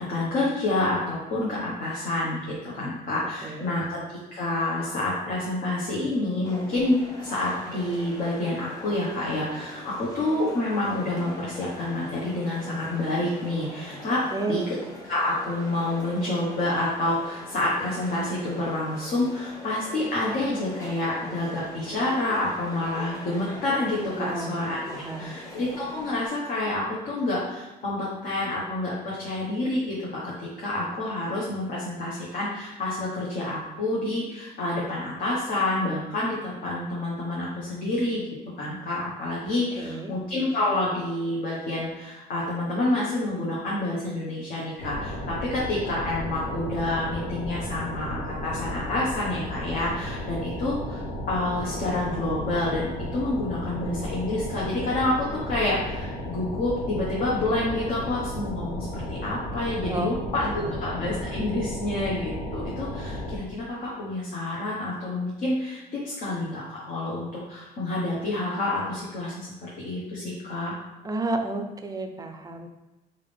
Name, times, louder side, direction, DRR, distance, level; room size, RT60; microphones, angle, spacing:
voice 1, 0.0-14.2 14.5-14.8 15.1-30.0 30.2-38.2 38.6-70.7, left 2 dB, 55° left, -6 dB, 1.1 m, -28 dB
voice 2, 3.4-3.7 14.3-14.7 24.2-24.6 24.9-25.3 39.8-40.1 59.8-60.2 60.5-60.7 71.0-72.7, right 2 dB, 20° right, 6 dB, 0.5 m, -31 dB
sound 1, 6.4-26.3, left 1 dB, 20° left, 1.0 m, -42 dB
sound 2, 44.8-63.4, left 1 dB, 85° left, 1.0 m, -34 dB
3.9 x 3.7 x 3.4 m, 1.0 s
cardioid pair, 110°, 17 cm